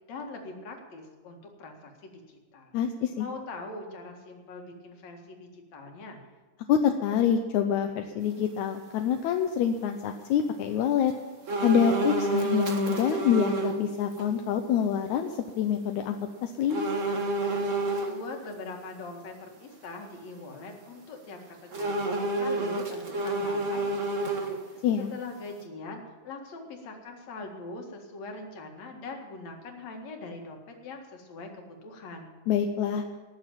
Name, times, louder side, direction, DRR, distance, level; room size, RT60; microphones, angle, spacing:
voice 1, 0.1-2.7 3.2-6.2 18.0-22.1 22.3-24.8 25.1-32.3, left 3 dB, 60° left, 2 dB, 3.0 m, -42 dB
voice 2, 2.7-3.3 6.7-11.1 11.6-16.9 24.8-25.1 32.5-33.0, left 8 dB, 75° left, 5 dB, 2.0 m, -26 dB
sound 1, 11.5-13.8 14.2-14.3 16.7-18.1 21.7-24.8 25.2-25.3, right 2 dB, 55° right, 0.8 m, -29 dB
19.0 x 7.1 x 8.9 m, 1.3 s
omnidirectional pair, 3.7 m